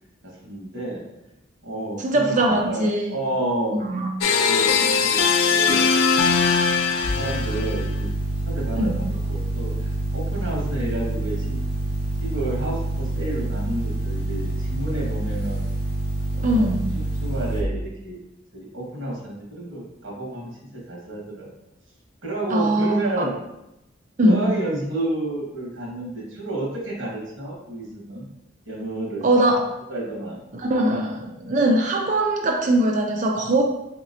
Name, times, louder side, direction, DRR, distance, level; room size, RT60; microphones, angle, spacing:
voice 1, 0.2-1.0 1.6-3.8 4.3-5.9 7.0-8.1 8.4-11.6 12.2-15.6 16.3-16.7 16.9-18.2 18.5-21.5 22.2-23.4 24.2-28.3 28.6-29.2 29.9-30.4, right 1 dB, 75° right, -4 dB, 1.3 m, -30 dB
voice 2, 2.0-3.2 3.7-4.1 8.8-9.0 16.4-16.9 22.5-23.0 24.2-24.5 29.2-29.6 30.6-33.6, right 1 dB, 40° right, 2 dB, 0.4 m, -21 dB
sound 1, 4.2-7.9, left 5 dB, 90° left, 0.4 m, -20 dB
sound 2, 7.0-17.6, right 1 dB, 50° left, 1.1 m, -27 dB
4.0 x 2.9 x 2.6 m, 0.89 s
head